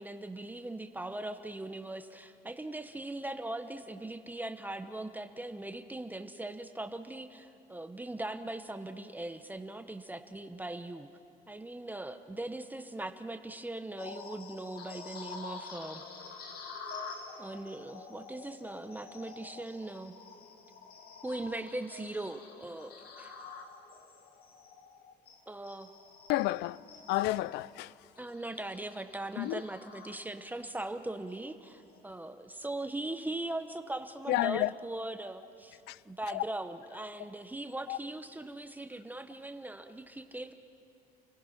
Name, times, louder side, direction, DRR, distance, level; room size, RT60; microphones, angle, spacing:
voice 1, 0.0-11.1 11.5-16.0 17.4-20.2 21.2-23.4 25.5-25.9 28.2-40.5, right 2 dB, 10° right, 0.9 m, -40 dB
sound 1, 14.0-30.6 31.1-31.3 31.8-32.0, left 5 dB, 65° left, 2.1 m, -48 dB
voice 2, 26.3-26.8 27.1-27.9 29.4-29.6 34.3-34.7 35.9-36.0 36.3-36.4 37.9-38.0, left 17 dB, 85° left, 0.4 m, -30 dB
30.0 x 16.0 x 5.9 m
cardioid pair, 110°, 17 cm